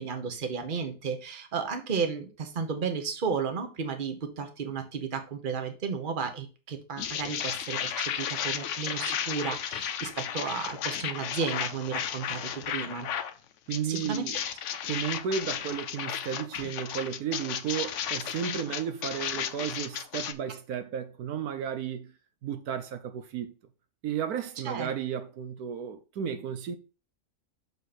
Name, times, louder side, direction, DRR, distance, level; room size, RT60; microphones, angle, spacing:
voice 1, 0.0-13.1 13.8-14.3 24.6-24.9, right 5 dB, 35° right, 1.2 m, -33 dB
sound 1, 7.0-13.3 13.7-20.3, left 9 dB, 65° left, 0.9 m, -34 dB
voice 2, 13.7-14.4 14.9-22.1 22.4-23.5 24.0-26.8, right 8 dB, 80° right, 1.2 m, -33 dB
6.4 x 5.3 x 4.1 m
omnidirectional pair, 1.6 m